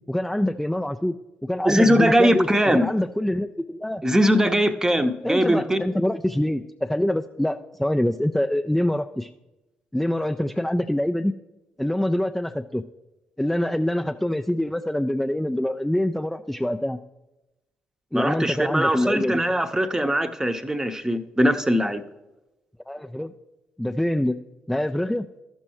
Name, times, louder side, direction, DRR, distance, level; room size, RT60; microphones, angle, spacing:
voice 1, 0.1-1.2 1.4-2.5 2.7-4.0 5.2-9.3 9.9-11.3 11.8-12.8 13.4-17.0 18.1-19.4 22.9-23.3 23.8-24.4 24.7-25.3, left 1 dB, 5° left, 5 dB, 0.4 m, -25 dB
voice 2, 1.6-2.9 4.0-5.8 18.1-22.0, equal, 15° right, 9 dB, 0.8 m, -21 dB
14.0 x 6.2 x 3.0 m, 0.99 s
figure-of-eight pair, 40°, 4 cm